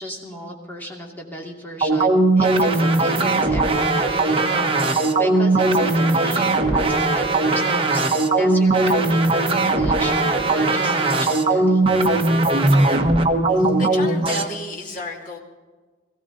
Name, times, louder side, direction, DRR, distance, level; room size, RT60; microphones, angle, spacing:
voice 1, 0.0-8.1 8.4-11.9, equal, 10° left, -1 dB, 2.5 m, -35 dB
sound 1, 1.8-14.4, right 2 dB, 30° right, 1.2 m, -19 dB
voice 2, 13.5-15.4, left 1 dB, 45° left, -1 dB, 2.5 m, -32 dB
19.0 x 15.5 x 4.0 m, 1.4 s
head